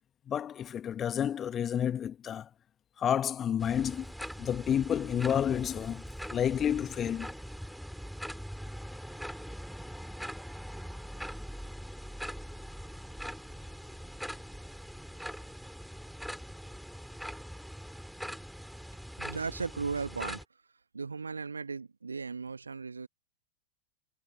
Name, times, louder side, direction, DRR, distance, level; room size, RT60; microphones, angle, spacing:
voice 1, 0.3-2.5 3.0-4.1 4.4-6.0 6.3-7.3, left 9 dB, 25° left, 1.5 m, -30 dB
sound 1, 3.6-20.4, equal, ahead, 5.2 m, -42 dB
voice 2, 19.2-20.4 20.9-23.1, right 4 dB, 80° right, 1.5 m, -36 dB
figure-of-eight pair, 90°, 0 cm